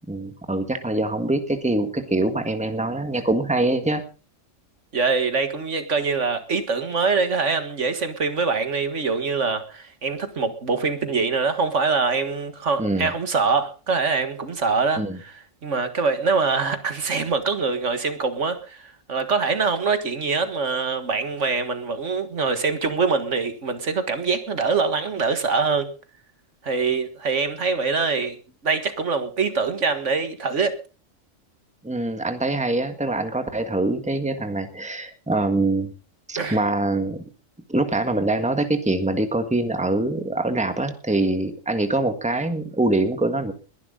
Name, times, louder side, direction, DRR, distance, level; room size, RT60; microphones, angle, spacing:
voice 1, 0.1-4.0 12.8-13.1 15.0-15.2 31.8-35.9 36.3-37.2 37.7-43.5, right 2 dB, 5° right, 1.6 m, -24 dB
voice 2, 4.9-25.9 26.6-28.4 28.6-30.8 36.4-36.6, right 4 dB, 70° right, 1.9 m, -24 dB
21.5 x 11.0 x 3.8 m
omnidirectional pair, 1.3 m